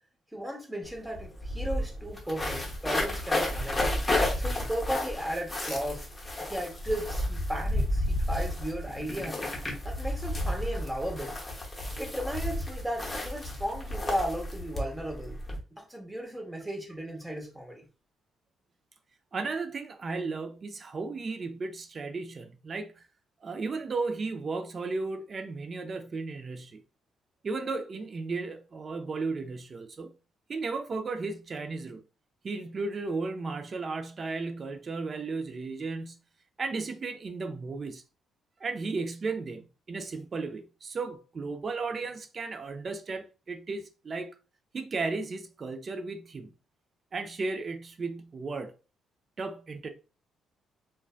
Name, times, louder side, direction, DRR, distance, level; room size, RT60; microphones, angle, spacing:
voice 1, 0.3-3.8 4.4-6.1 6.4-9.4 9.8-11.4 12.0-15.4 15.7-17.9, equal, 10° right, 0.8 m, -35 dB
sound 1, 0.8-0.9 1.1-15.6, left 1 dB, 20° left, 0.8 m, -32 dB
voice 2, 19.3-23.0 23.4-26.8 27.4-30.1 30.5-32.0 32.4-36.2 36.6-38.0 38.6-44.3 44.7-46.5 47.1-48.7 49.4-49.9, right 3 dB, 40° right, 0.4 m, -35 dB
2.5 x 2.2 x 2.3 m
cardioid pair, 90°, 0 cm